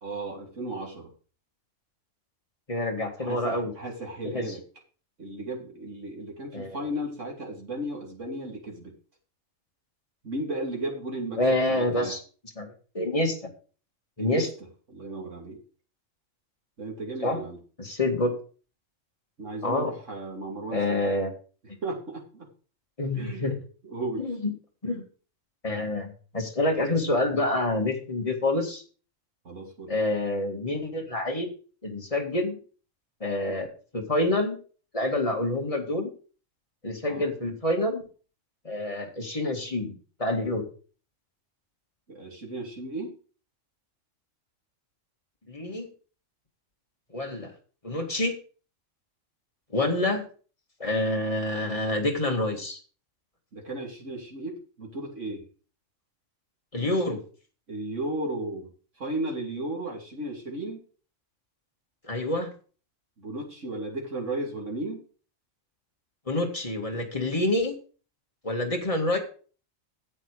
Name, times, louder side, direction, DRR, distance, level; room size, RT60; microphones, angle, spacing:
voice 1, 0.0-1.1 3.2-4.6 5.2-8.9 10.2-11.4 11.7-12.1 14.2-14.5 14.9-15.6 16.8-17.6 19.4-21.0 21.8-22.5 23.1-23.5 23.8-24.3 29.4-29.9 33.5-33.6 37.0-37.3 39.8-39.9 42.1-43.1 53.5-55.4 57.7-58.7 59.0-60.8 63.2-65.0, right 2 dB, 70° right, -1 dB, 3.2 m, -35 dB
voice 2, 2.7-3.7 4.2-4.4 6.5-6.8 11.4-12.2 12.6-13.5 14.2-14.5 17.2-17.4 17.8-18.3 19.6-19.9 20.7-21.3 23.0-23.5 24.2-24.5 24.8-25.0 25.6-28.8 29.9-31.5 31.8-32.6 33.2-33.7 33.9-34.6 34.9-36.1 36.8-38.0 38.6-39.9 40.2-40.7 45.5-45.9 47.1-47.5 47.8-48.4 49.7-50.2 50.8-52.8 56.7-57.2 62.0-62.5 66.3-67.7 68.4-69.2, left 2 dB, 25° left, 2 dB, 2.1 m, -27 dB
10.0 x 8.2 x 4.9 m, 0.39 s
omnidirectional pair, 1.3 m